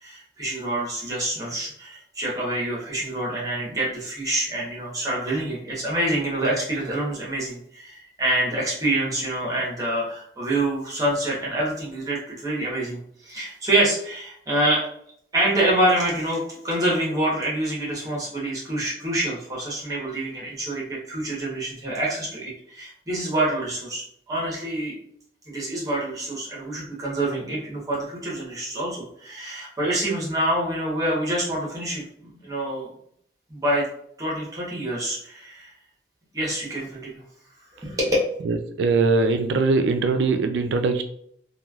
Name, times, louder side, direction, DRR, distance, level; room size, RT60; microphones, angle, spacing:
voice 1, 0.0-14.9 15.3-25.0 25.5-32.9 33.5-33.8 34.2-35.7 36.3-37.2 37.8-38.2, right 1 dB, 20° right, -5 dB, 1.0 m, -26 dB
voice 2, 38.8-41.0, right 3 dB, 85° right, 8 dB, 0.3 m, -21 dB
3.0 x 2.3 x 2.3 m, 0.67 s
head